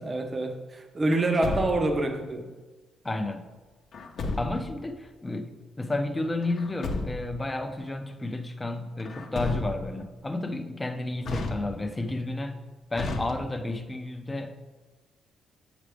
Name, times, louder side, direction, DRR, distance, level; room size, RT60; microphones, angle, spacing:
voice 1, 0.0-2.5, right 2 dB, 30° right, 0.7 m, -26 dB
Truck, 1.1-2.1 3.9-4.8 6.4-7.4 9.0-10.0 11.2-12.1 12.9-13.8, left 3 dB, 60° left, 0.8 m, -34 dB
voice 2, 3.0-3.5 4.4-12.6 12.9-14.6, left 2 dB, 15° left, 0.6 m, -31 dB
7.9 x 5.0 x 3.4 m
cardioid pair, 90°, 0 cm